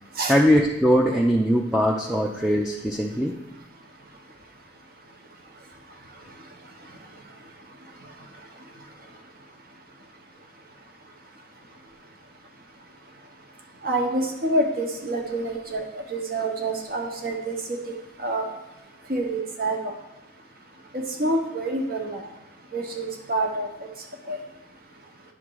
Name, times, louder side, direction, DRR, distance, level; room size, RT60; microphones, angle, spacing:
voice 1, 0.3-3.3, equal, 5° right, -1 dB, 0.4 m, -21 dB
voice 2, 13.8-15.8 16.1-17.5 17.9-18.0 18.2-18.4 19.1-19.9 20.9-22.3 22.7-23.7 24.3-24.4, right 2 dB, 50° right, 2 dB, 1.0 m, -27 dB
10.0 x 3.6 x 4.6 m, 1.0 s
head